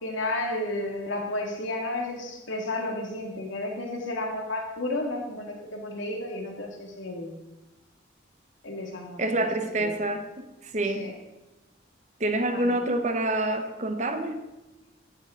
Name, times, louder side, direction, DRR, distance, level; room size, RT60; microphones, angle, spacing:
voice 1, 0.0-7.3 8.6-9.5 9.8-9.9 10.8-11.1 12.5-12.8, left 2 dB, 90° left, 1 dB, 2.4 m, -32 dB
voice 2, 9.2-10.4 10.7-11.1 12.2-14.4, right 1 dB, 40° right, 7 dB, 1.1 m, -27 dB
15.0 x 7.8 x 3.9 m, 1.0 s
head